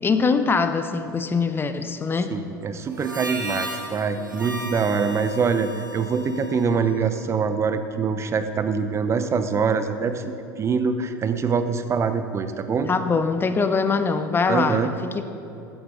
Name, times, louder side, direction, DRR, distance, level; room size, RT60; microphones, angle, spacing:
voice 1, 0.0-2.3 12.9-15.2, left 4 dB, 20° left, 9 dB, 0.8 m, -23 dB
voice 2, 2.3-10.2 10.6-12.9 14.5-14.9, right 5 dB, 25° right, 10 dB, 1.0 m, -24 dB
Harmonica, 2.9-7.5, right 1 dB, 90° right, 1.1 m, -36 dB
14.5 x 13.5 x 3.9 m, 2.8 s
figure-of-eight pair, 75°, 10 cm